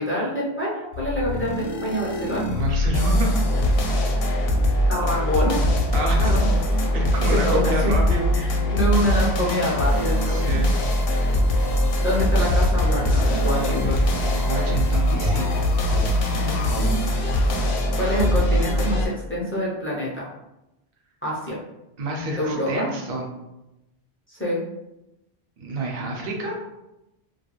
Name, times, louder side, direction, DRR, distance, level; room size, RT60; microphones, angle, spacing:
voice 1, 0.0-2.4 4.9-5.6 6.2-6.6 7.3-7.9 8.3-10.7 11.6-11.7 12.0-14.0 16.4-17.0 17.9-20.3 21.2-21.6 22.4-22.9 24.3-24.6, equal, 20° left, -6 dB, 0.4 m, -26 dB
sound 1, 0.9-19.1, left 1 dB, 70° left, 0.7 m, -22 dB
voice 2, 2.6-3.4 4.7-4.8 5.9-6.4 6.9-8.7 10.3-10.7 14.2-15.5 22.0-23.3 25.6-26.6, right 1 dB, 65° right, 0 dB, 0.8 m, -28 dB
2.3 x 2.2 x 2.9 m, 0.93 s
omnidirectional pair, 1.1 m